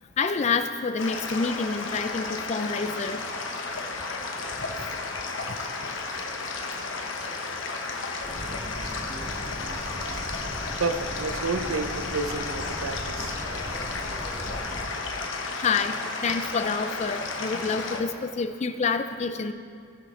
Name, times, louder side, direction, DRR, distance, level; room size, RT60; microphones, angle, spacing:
voice 1, 0.2-3.2 5.5-5.6 15.6-16.0 16.2-19.5, left 5 dB, 30° left, 9 dB, 0.4 m, -27 dB
sound 1, 1.0-18.0, left 3 dB, 65° left, 1.0 m, -33 dB
sound 2, 8.2-14.8, equal, ahead, 1.9 m, -38 dB
voice 2, 10.8-13.4, right 4 dB, 80° right, 8 dB, 0.6 m, -30 dB
19.0 x 6.4 x 3.2 m, 2.3 s
head